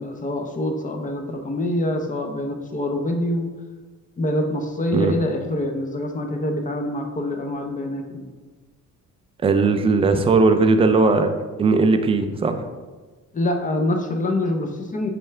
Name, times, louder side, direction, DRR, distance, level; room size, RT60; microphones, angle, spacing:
voice 1, 0.0-3.5 4.2-8.3 13.3-15.1, left 1 dB, 25° left, 4 dB, 0.6 m, -25 dB
voice 2, 9.4-11.3 11.6-12.6, right 3 dB, 20° right, 7 dB, 0.3 m, -18 dB
8.9 x 3.3 x 3.3 m, 1.3 s
cardioid pair, 155°, 33 cm